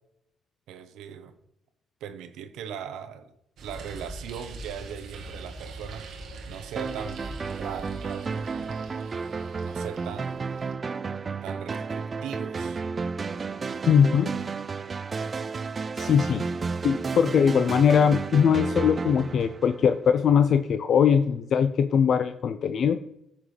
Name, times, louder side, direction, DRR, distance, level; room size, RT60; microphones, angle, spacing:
voice 1, 0.7-1.3 2.0-3.3 3.6-6.1 6.4-8.9 9.6-10.5 11.4-12.8 13.7-13.9 15.9-16.2 16.8-17.0, right 8 dB, 90° right, 10 dB, 0.8 m, -40 dB
sound 1, 3.6-10.7, right 2 dB, 70° right, 1.2 m, -42 dB
sound 2, 6.8-20.3, right 5 dB, 35° right, 0.3 m, -32 dB
voice 2, 13.9-14.3 16.0-16.4 16.8-23.0, left 7 dB, 60° left, 9 dB, 0.5 m, -21 dB
14.0 x 6.0 x 3.2 m, 0.78 s
cardioid pair, 90°, 0 cm